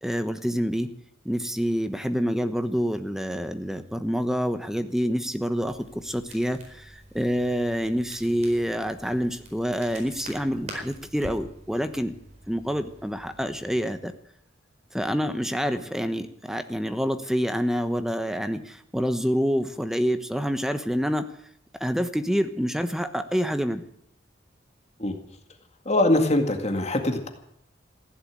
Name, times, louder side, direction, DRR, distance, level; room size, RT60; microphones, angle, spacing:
voice 1, 0.0-0.9 1.2-12.2 12.5-14.1 14.9-21.3 21.8-23.8, equal, ahead, 9 dB, 1.1 m, -27 dB
Crackle, 5.6-13.6, right 1 dB, 35° right, 4.5 m, -46 dB
voice 2, 25.9-27.3, left 1 dB, 35° left, 5 dB, 2.0 m, -22 dB
15.5 x 10.5 x 8.7 m, 0.70 s
head